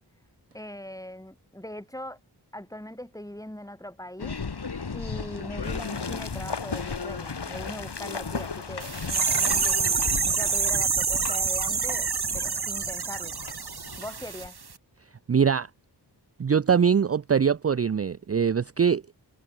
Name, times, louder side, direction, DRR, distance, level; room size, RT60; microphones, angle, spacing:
voice 1, 0.5-2.2 2.5-4.4 4.9-13.4 14.0-14.6, left 1 dB, 10° left, 6.5 m, -41 dB
sound 1, 4.2-14.5, left 5 dB, 70° left, 3.6 m, -37 dB
sound 2, 5.6-10.6, left 5 dB, 85° left, 5.4 m, -37 dB
sound 3, 8.8-14.4 14.7-14.8, right 5 dB, 65° right, 2.4 m, -27 dB
voice 2, 15.3-15.7 16.4-19.0, right 7 dB, 35° right, 0.5 m, -22 dB
wide cardioid pair, 80°, 41 cm